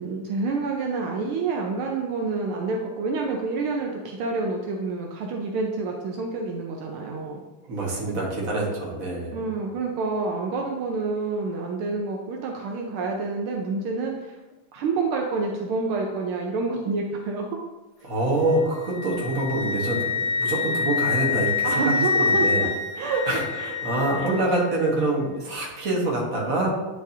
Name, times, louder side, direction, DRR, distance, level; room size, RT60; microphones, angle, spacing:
voice 1, 0.0-7.4 8.1-8.2 9.3-14.4 14.7-17.5 18.0-18.1 21.6-22.7 23.0-23.2 23.6-23.7 24.1-24.3, right 4 dB, 75° right, 1 dB, 1.5 m, -28 dB
voice 2, 7.7-9.4 18.0-22.6 23.3-26.7, right 2 dB, 40° right, -3 dB, 1.7 m, -26 dB
Wind instrument woodwind instrument, 18.5-24.5, left 4 dB, 80° left, 1.4 m, -26 dB
9.5 x 4.8 x 2.7 m, 1.1 s
omnidirectional pair, 2.4 m